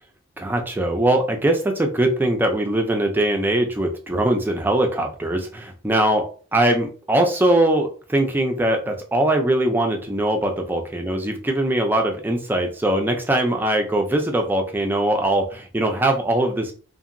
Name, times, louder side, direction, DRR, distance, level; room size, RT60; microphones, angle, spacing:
voice 1, 0.4-6.2 6.5-16.7, right 1 dB, 10° right, 3 dB, 0.3 m, -21 dB
2.8 x 2.5 x 2.5 m, 0.40 s
head